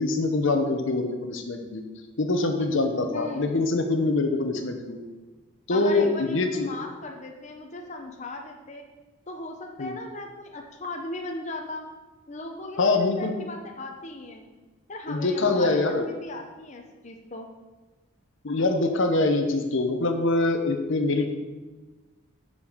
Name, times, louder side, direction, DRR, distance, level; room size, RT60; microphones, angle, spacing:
voice 1, 0.0-1.8 2.2-5.0 5.7-6.7 9.8-9.9 12.8-13.3 15.1-16.0 18.4-21.3, left 2 dB, 60° left, 5 dB, 0.9 m, -24 dB
voice 2, 3.1-3.6 5.7-8.8 9.3-11.9 12.3-14.5 14.9-17.5, left 2 dB, 35° left, 2 dB, 0.8 m, -37 dB
8.4 x 6.8 x 5.1 m, 1.2 s
head